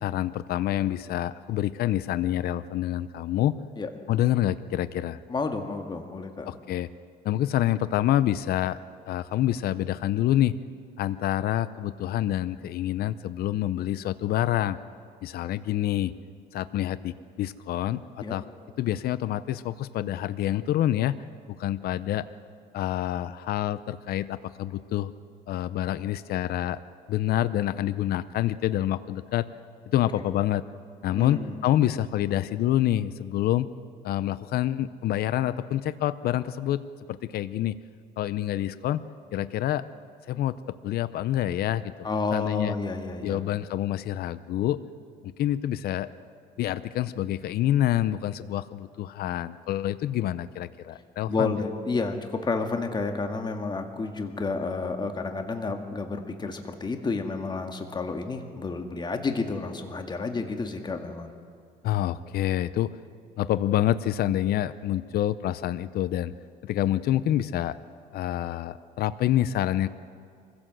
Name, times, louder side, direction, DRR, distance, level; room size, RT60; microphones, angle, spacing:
voice 1, 0.0-3.5 4.1-5.2 6.5-6.9 7.2-8.8 9.1-10.5 11.0-14.8 15.2-16.1 16.5-18.4 18.8-21.2 21.5-22.3 22.7-25.1 25.5-26.8 27.1-29.4 29.9-30.6 31.0-33.7 34.0-36.8 37.1-37.8 38.2-39.0 39.3-39.8 40.3-41.9 42.3-42.7 43.2-44.8 45.2-46.1 46.6-51.5 61.8-62.9 63.4-66.3 66.6-67.7 68.1-69.9, left 12 dB, 65° left, 15 dB, 0.7 m, -27 dB
voice 2, 5.3-6.5 18.2-18.4 30.2-30.3 31.1-31.6 42.0-43.4 51.3-61.3, left 3 dB, 25° left, 5 dB, 2.0 m, -30 dB
24.0 x 16.0 x 7.7 m, 2.2 s
cardioid pair, 110°, 17 cm